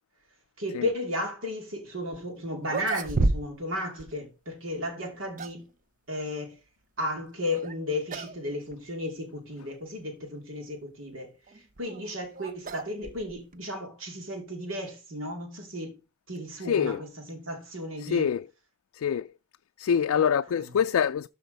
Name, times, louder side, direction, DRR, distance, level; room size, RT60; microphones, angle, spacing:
voice 1, 0.6-5.6 6.1-6.6 7.0-16.0 16.3-18.3 20.5-20.7, left 1 dB, 70° right, 2.8 m, -34 dB
sound 1, 2.1-2.2 2.6-3.7 4.0-4.1 5.0-5.7 7.5-7.8 8.1-8.4 8.7-8.8 9.6-9.7 11.5-13.6, right 2 dB, 40° right, 0.6 m, -31 dB
voice 2, 16.7-17.0 18.0-18.4 18.9-19.3 19.8-21.3, left 8 dB, 85° left, 0.3 m, -25 dB
13.0 x 4.4 x 5.2 m
head